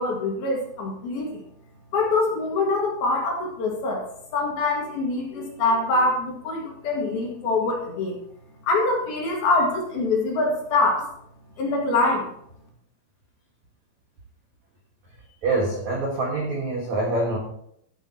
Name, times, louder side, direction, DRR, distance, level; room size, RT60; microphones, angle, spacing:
voice 1, 0.0-1.4 1.9-4.0 4.3-8.2 8.6-11.1 11.6-12.3, left 2 dB, 60° left, -1 dB, 3.2 m, -24 dB
voice 2, 15.4-17.4, right 2 dB, 65° right, -1 dB, 1.8 m, -25 dB
13.5 x 10.5 x 2.9 m, 0.69 s
omnidirectional pair, 6.0 m